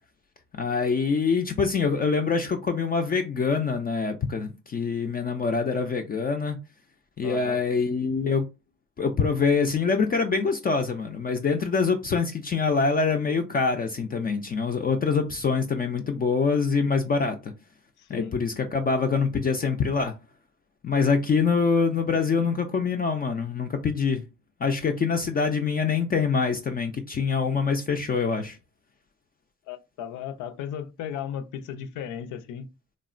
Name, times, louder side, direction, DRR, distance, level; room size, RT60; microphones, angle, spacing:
voice 1, 0.5-6.6 7.2-8.4 9.0-17.5 18.1-20.1 20.8-24.2 24.6-28.6, left 5 dB, 30° left, 0.4 m, -25 dB
voice 2, 7.2-7.6 18.0-18.3 29.7-32.7, left 9 dB, 85° left, 0.5 m, -35 dB
3.5 x 2.0 x 2.4 m
cardioid pair, 90°, 30 cm